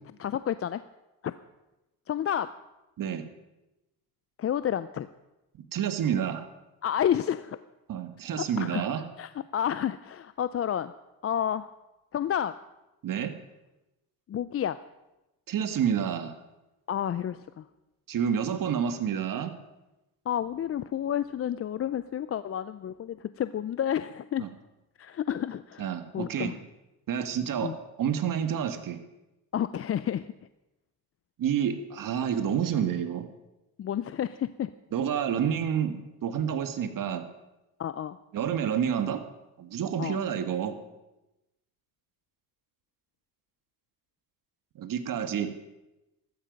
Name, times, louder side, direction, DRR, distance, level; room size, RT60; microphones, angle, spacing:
voice 1, 0.2-0.8 1.2-1.3 2.1-2.5 4.4-5.1 6.8-7.6 8.4-8.9 9.2-10.9 11.2-11.7 12.1-12.5 14.3-14.8 16.9-17.6 20.3-24.4 25.0-26.5 27.6-27.8 29.5-30.3 33.8-34.7 37.8-38.2 40.0-40.2, left 10 dB, 40° left, 14 dB, 0.5 m, -30 dB
voice 2, 5.5-6.5 7.9-9.0 13.0-13.3 15.5-16.4 18.1-19.6 24.4-24.5 25.8-26.6 27.1-27.7 28.0-29.0 31.4-33.3 34.9-37.3 38.3-39.2 39.6-40.7 44.8-45.5, right 8 dB, 60° right, 9 dB, 1.7 m, -29 dB
14.5 x 13.5 x 5.3 m, 0.98 s
cardioid pair, 85°, 37 cm